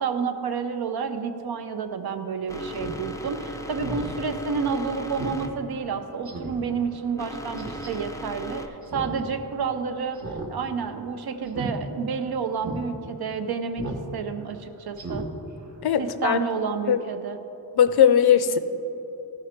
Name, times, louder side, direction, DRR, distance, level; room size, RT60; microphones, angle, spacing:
voice 1, 0.0-10.2 10.5-15.2 16.0-17.4, right 5 dB, 65° right, 8 dB, 0.7 m, -30 dB
sound 1, 2.5-8.7, equal, 10° left, 0.4 m, -38 dB
Speech synthesizer, 2.7-3.0 3.3-3.4 3.8-4.1 4.5-4.6 5.2-5.4 5.7-5.8 6.2-6.6 7.6-7.9 8.8-9.2 9.5-9.6 10.1-10.5 10.8-11.0 11.5-11.7 12.1-12.2 12.6-12.8 13.8-14.0 14.4-14.5 14.9-15.3 15.6-15.7, right 2 dB, 45° right, 0.9 m, -34 dB
voice 2, 15.8-16.4 16.9-17.0 17.8-18.6, left 8 dB, 65° left, 11 dB, 0.5 m, -19 dB
14.0 x 5.1 x 4.3 m, 3.0 s
wide cardioid pair, 160°, 41 cm